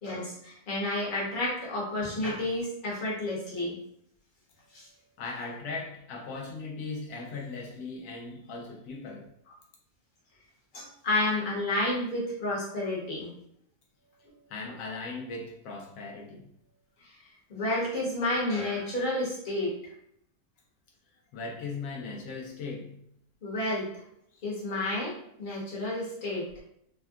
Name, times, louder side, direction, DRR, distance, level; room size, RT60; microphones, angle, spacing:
voice 1, 0.0-3.8 4.7-4.9 10.7-13.3 17.5-19.7 23.4-23.9 24.4-26.5, left 1 dB, 35° left, -6 dB, 1.0 m, -30 dB
voice 2, 5.2-9.3 14.5-16.5 21.3-23.0 24.3-24.4, left 3 dB, 80° left, 0 dB, 1.1 m, -38 dB
3.5 x 2.2 x 2.3 m, 0.72 s
omnidirectional pair, 1.6 m